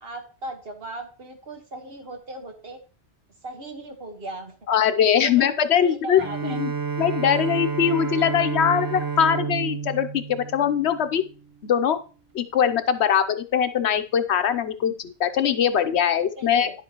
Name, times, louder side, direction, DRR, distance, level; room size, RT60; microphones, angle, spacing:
voice 1, 0.0-2.8 3.4-4.5 5.2-6.6 16.4-16.7, right 2 dB, 65° right, 4 dB, 1.7 m, -37 dB
voice 2, 4.7-6.7 7.0-11.2 11.6-12.0 12.3-16.7, left 8 dB, 90° left, 10 dB, 1.1 m, -22 dB
Bowed string instrument, 6.2-11.4, right 6 dB, 30° right, 0.4 m, -30 dB
10.5 x 7.7 x 3.0 m, 0.35 s
omnidirectional pair, 1.1 m